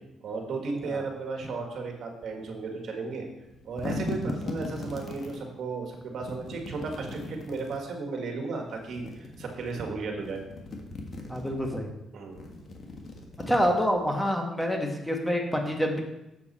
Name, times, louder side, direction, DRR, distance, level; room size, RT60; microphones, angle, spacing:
voice 1, 0.2-3.3 3.6-10.5 12.1-12.5, right 4 dB, 65° right, 2 dB, 1.7 m, -34 dB
sound 1, 3.4-5.4 6.2-7.8 8.7-9.8 10.2-11.7 12.3-14.1, left 2 dB, 45° left, 1.5 m, -38 dB
voice 2, 11.3-11.9 13.5-16.0, equal, 5° left, 2 dB, 1.4 m, -27 dB
7.3 x 6.8 x 4.2 m, 0.90 s
cardioid pair, 90°, 0 cm